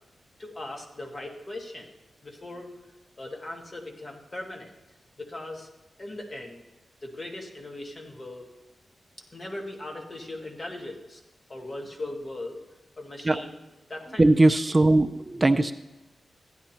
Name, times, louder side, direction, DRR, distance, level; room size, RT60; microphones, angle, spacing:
voice 1, 0.4-1.9 2.2-2.7 3.2-4.7 5.2-5.7 6.0-6.6 7.0-8.5 9.2-11.2 11.5-12.6 13.0-13.6 13.9-14.3, left 2 dB, 40° left, 1 dB, 1.7 m, -39 dB
voice 2, 14.2-15.7, right 2 dB, 30° right, 10 dB, 0.4 m, -20 dB
15.0 x 10.0 x 2.9 m, 1.0 s
cardioid pair, 65°, 0 cm